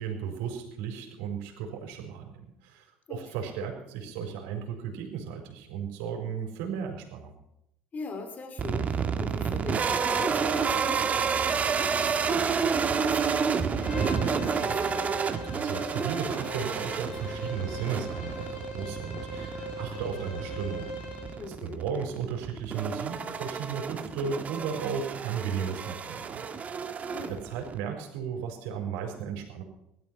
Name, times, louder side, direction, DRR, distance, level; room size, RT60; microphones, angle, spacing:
voice 1, 0.0-2.3 2.6-7.3 15.4-20.9 21.6-26.9 27.3-29.6, right 7 dB, 75° right, 3 dB, 4.8 m, -35 dB
voice 2, 3.1-3.5 7.9-15.1 21.4-21.8 27.0-27.4, left 4 dB, 35° left, 5 dB, 3.1 m, -42 dB
sound 1, 8.6-27.8, right 6 dB, 35° right, 1.7 m, -30 dB
Bowed string instrument, 13.8-21.4, equal, 90° left, 7.3 m, -40 dB
17.0 x 13.0 x 5.8 m, 0.80 s
hypercardioid pair, 75°, 5 cm